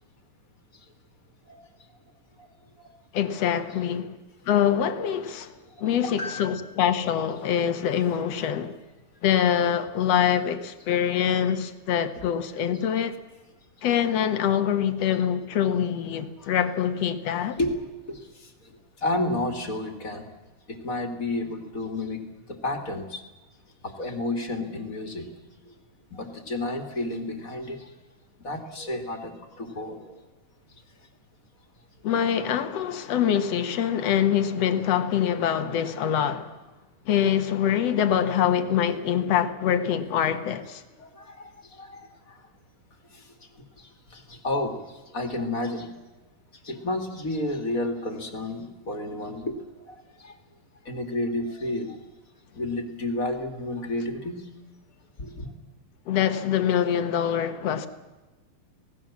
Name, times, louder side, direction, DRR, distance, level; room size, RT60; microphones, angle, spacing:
voice 1, 3.1-4.1 4.5-5.5 5.8-8.7 9.2-13.2 13.8-17.6 32.0-36.5 37.1-40.8 56.1-57.9, left 9 dB, 55° left, 2.2 m, -24 dB
voice 2, 5.8-6.7 16.4-16.5 17.6-17.8 18.1-20.3 20.7-23.2 23.8-25.3 25.6-25.7 26.1-27.9 28.4-30.2 41.0-42.4 43.1-43.3 43.8-45.9 46.6-50.4 50.8-52.0 52.5-54.5 55.2-55.5, left 2 dB, 25° left, 2.3 m, -32 dB
26.5 x 18.5 x 7.4 m
omnidirectional pair, 3.9 m